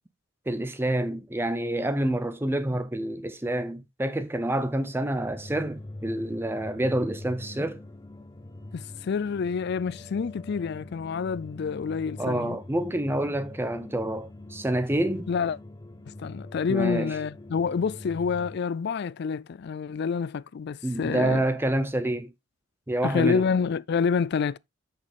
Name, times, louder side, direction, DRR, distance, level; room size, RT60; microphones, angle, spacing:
voice 1, 0.5-7.8 12.2-15.3 16.7-17.2 20.8-22.3 22.9-23.4, right 1 dB, 10° right, 0.6 m, -28 dB
sound 1, 5.2-18.6, left 2 dB, 20° left, 0.8 m, -44 dB
voice 2, 8.7-12.6 15.3-15.6 16.2-21.4 23.0-24.6, left 6 dB, 55° left, 0.4 m, -28 dB
7.5 x 6.3 x 3.4 m
head